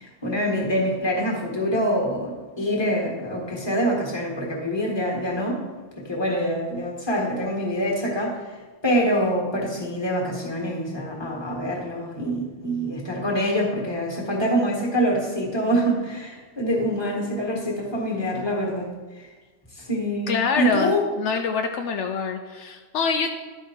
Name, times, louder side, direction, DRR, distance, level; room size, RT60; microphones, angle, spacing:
voice 1, 0.0-5.6 6.1-8.6 8.8-18.9 19.7-21.0, equal, 20° left, -1 dB, 1.6 m, -25 dB
voice 2, 20.3-23.3, left 5 dB, 75° left, 5 dB, 0.9 m, -25 dB
11.5 x 4.5 x 4.4 m, 1.3 s
omnidirectional pair, 1.2 m